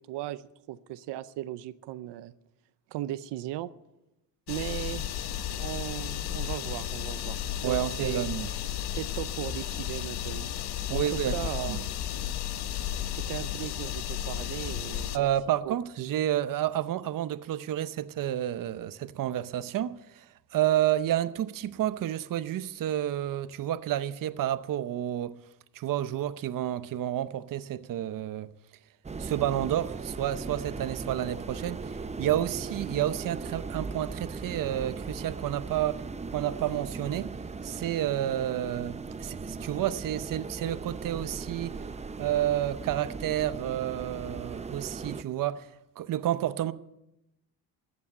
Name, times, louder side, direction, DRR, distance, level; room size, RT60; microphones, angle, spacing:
voice 1, 0.1-2.3 2.9-3.7 4.5-5.1 5.6-7.4 7.6-8.2 9.0-10.5 10.9-11.8 13.1-15.3 15.6-15.7, right 14 dB, 85° right, 0.8 m, -37 dB
sound 1, 4.5-15.2, left 10 dB, 70° left, 1.0 m, -33 dB
voice 2, 7.6-8.5 10.9-11.4 11.7-11.8 15.1-25.4 25.7-28.5 29.2-36.0 36.3-37.3 37.6-41.7 42.2-45.7 46.0-46.7, right 12 dB, 55° right, 0.8 m, -30 dB
sound 2, 29.0-45.2, right 4 dB, 15° right, 0.7 m, -38 dB
15.0 x 8.5 x 9.8 m
cardioid pair, 115°, 40 cm